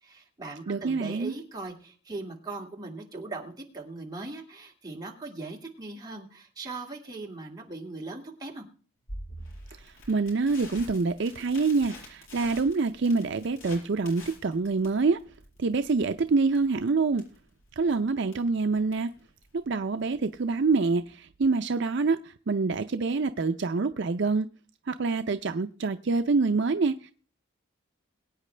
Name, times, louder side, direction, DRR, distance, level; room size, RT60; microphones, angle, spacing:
voice 1, 0.0-8.6, right 3 dB, 20° right, 2.1 m, -39 dB
voice 2, 0.7-1.3 9.8-15.2 15.6-17.2 17.8-19.1 19.5-24.5 24.9-27.1, right 4 dB, 55° right, 0.5 m, -26 dB
Crackle, 9.1-21.1, left 1 dB, 75° left, 6.1 m, -47 dB
22.0 x 9.1 x 3.3 m
head